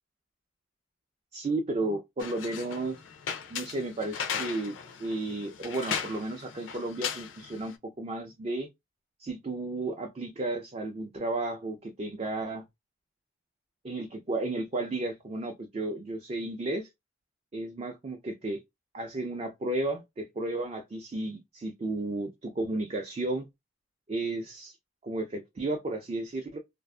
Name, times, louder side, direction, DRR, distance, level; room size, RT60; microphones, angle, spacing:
voice 1, 1.3-3.0 3.5-8.7 9.2-12.6 13.8-16.9 17.5-18.6 18.9-23.5 24.1-24.8 25.0-26.6, right 2 dB, 35° right, 0.4 m, -33 dB
sound 1, 2.2-7.7, left 7 dB, 85° left, 0.5 m, -37 dB
2.5 x 2.3 x 2.2 m
head